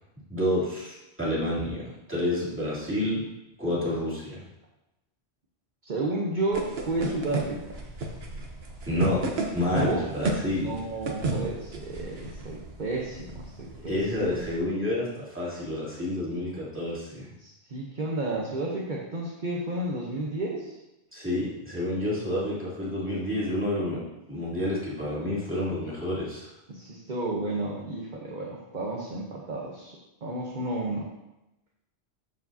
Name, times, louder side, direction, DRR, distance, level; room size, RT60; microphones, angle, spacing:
voice 1, 0.3-3.2 3.6-4.4 8.9-9.2 9.5-10.7 13.8-17.3 21.1-24.0 24.3-26.5, left 1 dB, 10° right, -8 dB, 2.7 m, -29 dB
voice 2, 5.8-7.9 9.7-10.0 10.6-14.0 17.4-20.8 26.7-31.1, right 2 dB, 50° right, -3 dB, 1.0 m, -32 dB
sound 1, 6.5-14.6, right 2 dB, 70° right, 1.3 m, -34 dB
13.5 x 4.8 x 2.7 m, 0.93 s
omnidirectional pair, 1.1 m